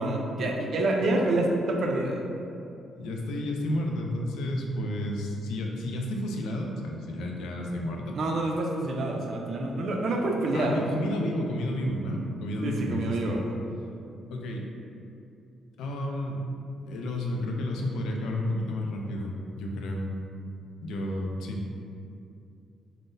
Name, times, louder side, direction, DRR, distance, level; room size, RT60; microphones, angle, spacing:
voice 1, 0.0-2.2 8.1-10.8 12.6-13.4, right 2 dB, 60° right, 0 dB, 0.4 m, -27 dB
voice 2, 2.9-8.2 10.5-13.4 14.3-14.6 15.8-16.4 16.8-20.1 20.8-21.8, left 1 dB, 85° left, 1 dB, 0.3 m, -31 dB
3.7 x 2.0 x 2.5 m, 2.6 s
cardioid pair, 90°, 0 cm